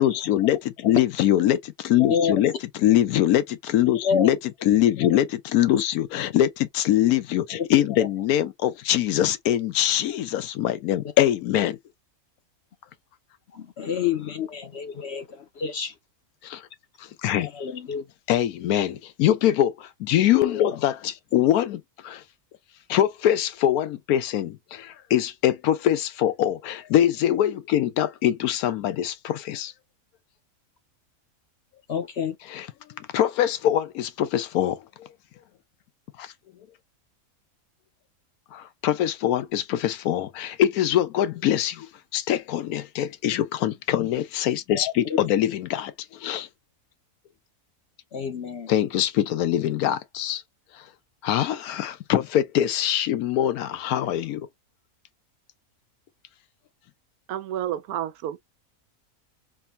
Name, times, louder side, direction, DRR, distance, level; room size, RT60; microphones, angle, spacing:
voice 1, 0.0-2.5 2.8-4.4 4.6-11.8 16.4-16.6 17.0-17.7 18.3-22.2 22.9-29.7 32.5-32.7 33.1-35.1 36.2-36.3 38.5-41.9 42.1-46.5 48.7-50.4 50.7-50.8 51.2-54.5, left 12 dB, 85° left, 1.1 m, -23 dB
voice 2, 13.5-15.9 17.5-18.0 31.9-32.4 44.7-45.2 48.1-48.7, left 7 dB, 60° left, 0.7 m, -28 dB
voice 3, 57.3-58.4, right 11 dB, 85° right, 1.1 m, -30 dB
3.5 x 2.1 x 4.0 m
omnidirectional pair, 1.6 m